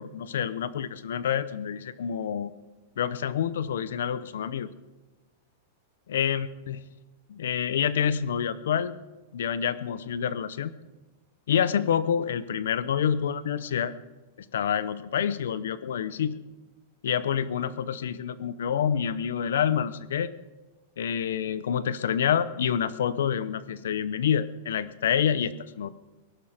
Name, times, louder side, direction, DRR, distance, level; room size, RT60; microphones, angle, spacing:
voice 1, 0.0-2.5 3.0-4.7 6.1-6.8 7.3-8.9 9.3-10.7 11.5-13.9 14.4-16.4 17.0-20.3 21.0-25.9, left 8 dB, 90° left, 16 dB, 0.8 m, -27 dB
21.0 x 12.0 x 5.0 m, 1.2 s
supercardioid pair, 160°, 0 cm